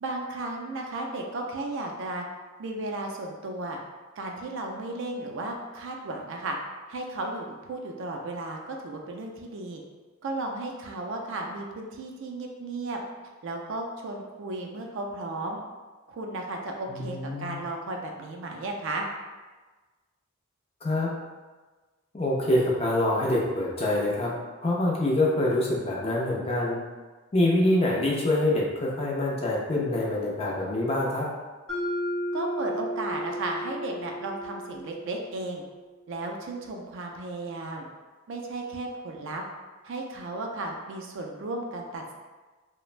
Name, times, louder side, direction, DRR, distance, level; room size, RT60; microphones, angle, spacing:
voice 1, 0.0-2.2 2.6-3.8 4.2-6.6 6.9-9.8 10.2-13.0 13.4-15.6 16.1-19.1 32.3-35.6 36.1-37.9 38.3-39.4 39.8-42.1, right 2 dB, 60° right, 1 dB, 0.4 m, -34 dB
voice 2, 16.9-17.6 20.8-21.1 22.1-24.3 24.6-26.8 27.3-31.3, left 1 dB, 30° left, -3 dB, 0.4 m, -25 dB
Mallet percussion, 31.7-35.7, equal, 60° left, 0.8 m, -34 dB
3.1 x 2.1 x 2.4 m, 1.3 s
head